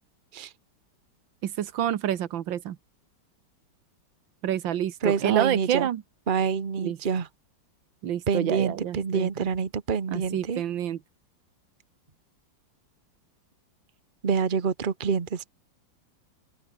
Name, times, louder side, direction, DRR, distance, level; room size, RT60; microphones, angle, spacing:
voice 1, 1.4-2.8 4.4-6.0 6.8-7.0 8.0-9.5 10.1-11.0, right 10 dB, 80° right, 1.8 m, -28 dB
voice 2, 5.0-5.9 6.3-7.3 8.3-10.6 14.2-15.5, right 6 dB, 30° right, 1.2 m, -27 dB
open air
omnidirectional pair, 2.1 m